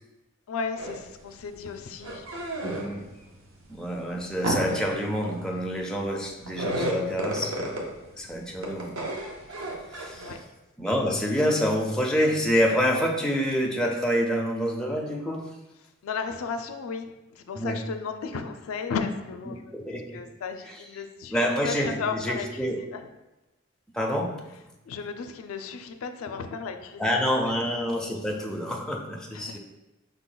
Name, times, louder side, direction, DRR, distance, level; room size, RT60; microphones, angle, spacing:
voice 1, 0.5-2.2 10.1-10.4 16.0-19.7 20.1-22.5 22.9-23.0 24.9-27.2 29.3-29.6, left 5 dB, 90° left, 7 dB, 0.4 m, -34 dB
sound 1, 0.8-1.1 1.4-3.1 3.5-8.2 8.5-10.4, right 1 dB, 80° right, 0.8 m, -32 dB
voice 2, 2.6-3.1 3.7-7.9 8.2-9.0 9.9-10.4 10.8-15.5 17.5-17.8 19.5-20.2 20.6-21.0 21.3-22.8 23.9-24.3 27.0-29.6, equal, 5° left, -1 dB, 0.4 m, -27 dB
5.4 x 2.2 x 3.8 m, 1.0 s
head